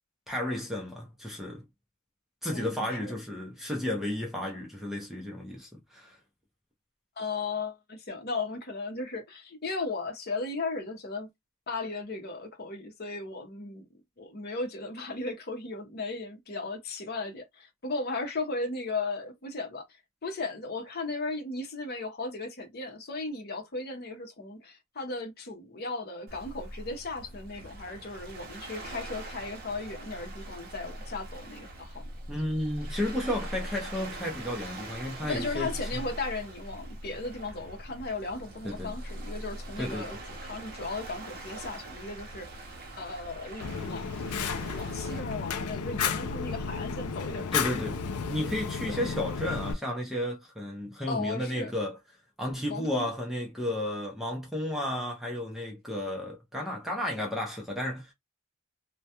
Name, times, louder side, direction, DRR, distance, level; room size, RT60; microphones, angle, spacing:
voice 1, 0.3-1.6 2.4-6.2 32.3-36.0 38.6-38.9 39.8-40.1 47.5-52.0 52.4-58.1, left 1 dB, ahead, 0.5 m, -33 dB
voice 2, 2.5-3.2 7.2-11.3 11.7-13.8 14.2-32.0 35.3-42.5 42.9-47.7 48.9-49.0 51.1-51.7 52.7-53.1, left 3 dB, 45° left, 0.7 m, -36 dB
Waves surf, 26.3-45.2, right 1 dB, 45° right, 0.7 m, -42 dB
Fire, 43.6-49.7, left 6 dB, 80° left, 0.4 m, -33 dB
2.2 x 2.2 x 2.8 m
head